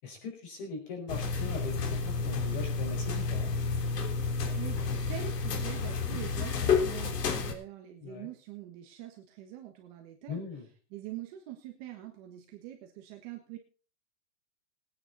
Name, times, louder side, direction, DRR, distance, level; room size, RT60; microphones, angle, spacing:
voice 1, 0.0-3.5 8.0-8.3 10.3-10.7, left 4 dB, 30° left, 4 dB, 5.0 m, -40 dB
sound 1, 1.1-7.5, left 4 dB, 80° left, 3.4 m, -30 dB
voice 2, 4.4-4.8 5.1-10.4 10.9-13.6, right 12 dB, 25° right, 3 dB, 1.4 m, -44 dB
20.0 x 9.6 x 4.1 m, 0.38 s
hypercardioid pair, 175°, 47 cm